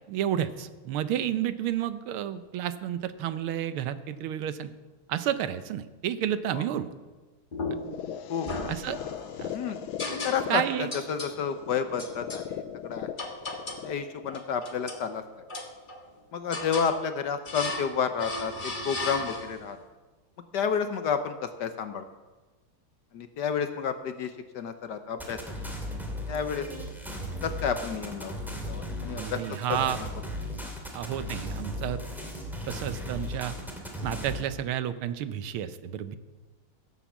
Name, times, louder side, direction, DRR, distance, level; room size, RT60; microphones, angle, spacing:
voice 1, 0.1-4.7 5.1-6.9 8.7-9.0 9.4-9.5 10.5-10.9 29.1-30.0 30.9-32.0 32.7-33.5 34.0-36.2, right 10 dB, 85° right, 13 dB, 1.7 m, -31 dB
sound 1, 7.5-8.0 8.5-9.3 10.0-10.6 10.9-11.4 12.0-12.5 13.2-13.9 14.3-15.1 15.5-16.1 16.5-17.0 17.5-17.9 18.2-19.7, left 2 dB, 25° left, 1.3 m, -36 dB
sound 2, 7.7-15.7, left 9 dB, 80° left, 1.5 m, -40 dB
voice 2, 8.3-8.7 9.5-9.8 10.1-13.1 13.8-15.2 16.3-19.8 20.5-22.0 23.1-25.4 26.3-26.7 27.4-28.3 28.7-29.4 29.7-29.8, left 6 dB, 60° left, 9 dB, 1.3 m, -30 dB
sound 3, 25.2-34.4, left 1 dB, ahead, 2.3 m, -36 dB
16.5 x 8.1 x 7.3 m, 1.2 s
omnidirectional pair, 2.3 m